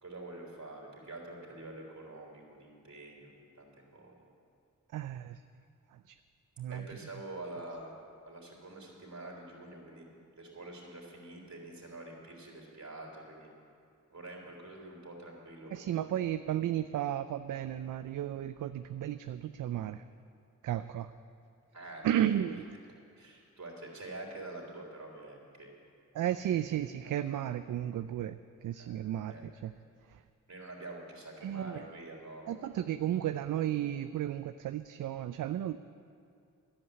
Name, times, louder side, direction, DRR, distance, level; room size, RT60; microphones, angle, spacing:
voice 1, 0.0-4.2 6.7-7.9 8.2-10.1 10.4-13.5 14.1-16.0 21.7-22.1 22.3-22.5 23.2-25.7 28.8-29.0 29.3-29.5 30.5-32.8, right 2 dB, 60° right, -1 dB, 3.3 m, -46 dB
voice 2, 4.9-5.4 6.1-6.2 6.6-7.0 15.7-20.0 20.6-21.1 22.0-22.7 26.1-29.7 30.1-30.2 31.4-31.9 32.5-35.8, right 11 dB, 75° right, 11 dB, 0.4 m, -34 dB
11.0 x 8.2 x 9.8 m, 2.4 s
cardioid pair, 50°, 32 cm